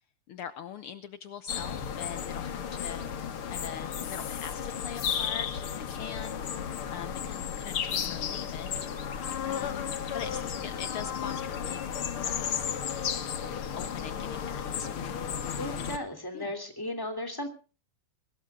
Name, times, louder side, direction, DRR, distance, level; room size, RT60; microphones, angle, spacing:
voice 1, 0.3-8.9 9.4-11.9 12.1-13.2 13.7-15.2 16.3-16.5, left 8 dB, 80° left, 11 dB, 1.2 m, -43 dB
sound 1, 1.5-16.0, left 8 dB, 50° left, 1.9 m, -34 dB
voice 2, 15.6-17.5, left 1 dB, 5° left, 4 dB, 2.8 m, -35 dB
22.5 x 20.0 x 2.5 m, 0.37 s
omnidirectional pair, 3.7 m